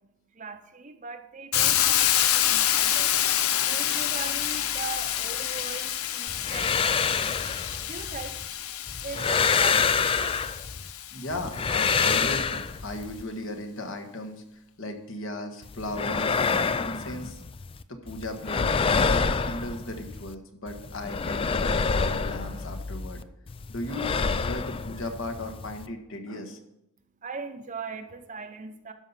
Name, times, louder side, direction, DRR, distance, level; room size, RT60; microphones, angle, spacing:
voice 1, 0.0-10.4 27.0-28.9, right 4 dB, 35° right, 8 dB, 0.7 m, -40 dB
Hiss, 1.5-11.4, left 11 dB, 80° left, 0.6 m, -27 dB
sound 1, 6.3-8.5 8.9-10.9 11.3-13.2 15.6-17.8 18.1-20.3 20.7-23.2 23.5-25.9, left 5 dB, 25° left, 0.3 m, -27 dB
voice 2, 11.1-16.4 16.8-17.4 17.9-23.2 23.7-26.6, left 1 dB, 65° left, 5 dB, 1.4 m, -36 dB
12.5 x 5.5 x 5.7 m, 0.85 s
head